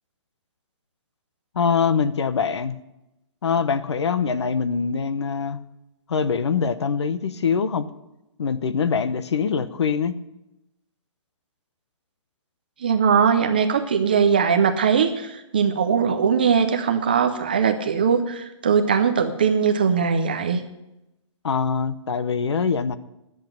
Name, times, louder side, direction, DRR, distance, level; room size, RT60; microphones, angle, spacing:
voice 1, 1.5-2.8 3.4-5.6 6.1-7.9 8.4-10.2 21.4-23.0, left 6 dB, 60° left, 14 dB, 0.8 m, -23 dB
voice 2, 12.8-20.6, right 6 dB, 20° right, 7 dB, 0.4 m, -20 dB
11.0 x 7.8 x 9.2 m, 0.93 s
hypercardioid pair, 175°, 16 cm